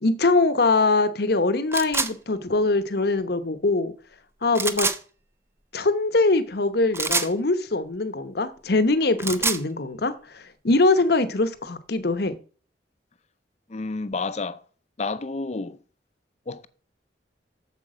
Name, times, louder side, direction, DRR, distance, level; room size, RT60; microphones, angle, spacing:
voice 1, 0.0-3.9 4.4-4.9 5.7-12.3, left 3 dB, 60° left, 1.0 m, -22 dB
sound 1, 1.7-2.1 4.5-5.0 6.9-7.3 9.0-9.6, right 4 dB, 15° right, 0.6 m, -25 dB
voice 2, 13.7-14.6 15.0-15.8 16.5-16.7, left 3 dB, 40° left, 0.6 m, -30 dB
8.3 x 7.1 x 4.9 m
head